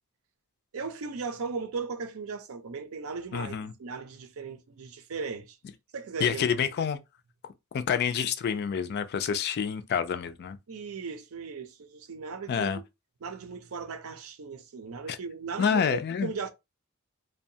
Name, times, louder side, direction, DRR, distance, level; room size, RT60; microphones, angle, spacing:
voice 1, 0.7-5.6 5.9-6.5 10.7-12.8 13.2-16.5, right 4 dB, 75° right, 0.5 m, -37 dB
voice 2, 3.3-3.7 6.2-7.0 7.7-10.6 12.5-12.8 15.1-15.2 15.6-16.3, left 7 dB, 50° left, 0.3 m, -28 dB
2.6 x 2.2 x 2.7 m
head